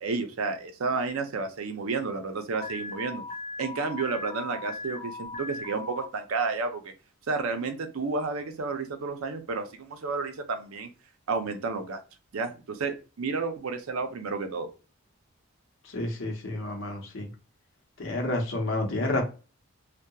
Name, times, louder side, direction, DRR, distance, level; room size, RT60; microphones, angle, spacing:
voice 1, 0.0-3.2 3.6-6.9 7.3-10.9 11.3-12.0 12.3-14.7, right 4 dB, 90° right, 0.5 m, -31 dB
Alarm, 2.5-6.0, left 3 dB, 30° left, 0.7 m, -38 dB
voice 2, 15.9-17.3 18.0-19.2, left 2 dB, 65° left, 0.8 m, -30 dB
2.7 x 2.1 x 2.3 m
head